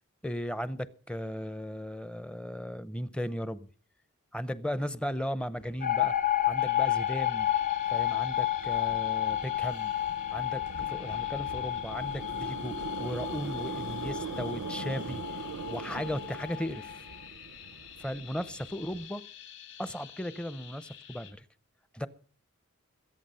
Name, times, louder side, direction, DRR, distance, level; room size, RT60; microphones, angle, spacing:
voice 1, 0.2-3.7 4.3-6.1 6.5-7.5 7.9-9.9 10.3-17.0 18.0-19.2 19.8-21.4 21.9-22.1, equal, 5° left, 0.6 m, -36 dB
sound 1, 5.6-19.1, right 5 dB, 90° right, 0.7 m, -43 dB
sound 2, 5.8-17.0, left 13 dB, 35° left, 0.8 m, -31 dB
sound 3, 6.6-21.3, left 10 dB, 60° left, 3.5 m, -50 dB
22.0 x 8.6 x 5.5 m
head